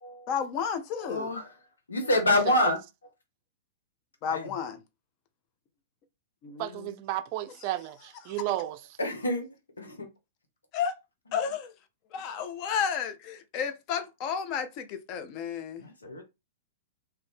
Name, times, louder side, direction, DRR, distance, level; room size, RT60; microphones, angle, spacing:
voice 1, 0.3-1.3 4.2-4.8 6.4-6.7 10.7-11.0 11.3-11.7 12.1-15.8, left 7 dB, 40° left, 0.6 m, -32 dB
voice 2, 1.0-1.5 1.9-2.8 4.2-4.5 9.0-10.1 15.8-16.2, left 1 dB, 85° left, 1.1 m, -27 dB
voice 3, 6.6-8.8, right 14 dB, 45° right, 0.4 m, -33 dB
2.8 x 2.6 x 3.4 m
hypercardioid pair, 110°, 0 cm